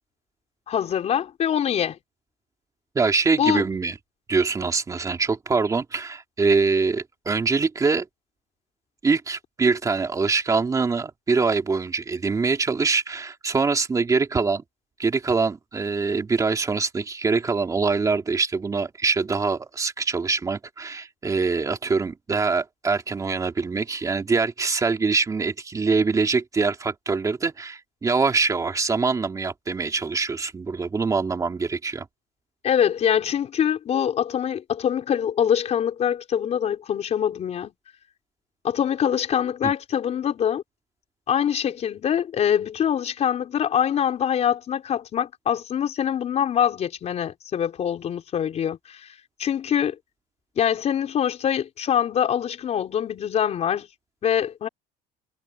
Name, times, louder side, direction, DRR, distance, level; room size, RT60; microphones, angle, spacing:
voice 1, 0.7-2.0 3.4-3.6 32.6-37.7 38.6-40.6 41.3-49.1 49.4-50.0 50.6-53.9 54.2-54.7, left 9 dB, 35° left, 4.9 m, -24 dB
voice 2, 2.9-3.9 4.3-8.1 9.0-14.6 15.0-32.1 39.6-39.7, right 4 dB, 15° right, 2.9 m, -24 dB
cardioid pair, 155°, 19 cm